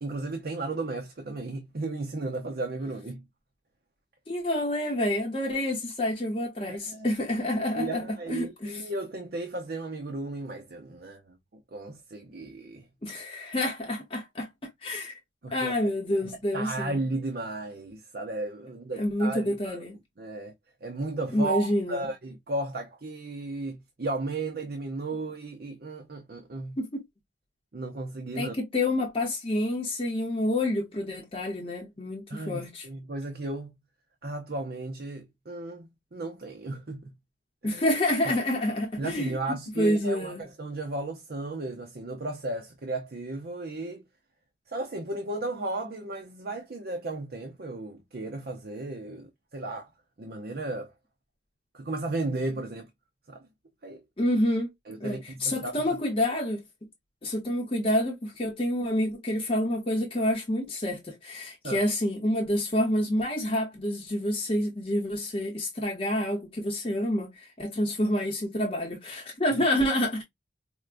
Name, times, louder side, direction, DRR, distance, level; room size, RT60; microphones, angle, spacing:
voice 1, 0.0-3.2 6.7-7.1 7.8-11.2 11.7-12.9 15.4-15.7 16.5-19.8 20.2-20.5 20.8-26.8 27.7-28.5 32.3-33.8 34.2-37.1 37.6-37.8 39.0-44.0 44.7-49.9 50.2-50.9 51.7-52.9 53.3-53.4 53.8-54.0 54.9-55.8 61.6-61.8, right 2 dB, 55° right, 0.6 m, -34 dB
voice 2, 4.3-8.8 13.0-14.5 14.8-15.2 15.5-17.0 18.9-20.0 21.3-22.1 26.8-27.0 28.3-32.9 37.6-40.4 54.2-54.7 55.0-56.6 57.2-70.2, left 1 dB, 30° left, 0.8 m, -28 dB
4.5 x 2.1 x 2.4 m
head